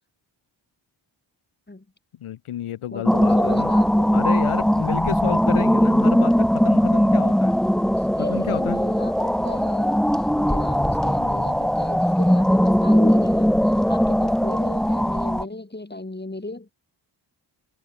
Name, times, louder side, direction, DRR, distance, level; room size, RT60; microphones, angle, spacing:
voice 1, 2.2-3.7 4.1-7.5 8.2-8.8, left 11 dB, 85° left, 1.0 m, -31 dB
voice 2, 2.9-4.1 8.2-10.0 10.4-16.7, left 2 dB, 20° left, 4.1 m, -35 dB
sound 1, 3.1-15.4, equal, ahead, 0.8 m, -20 dB
cardioid pair, 50°, 49 cm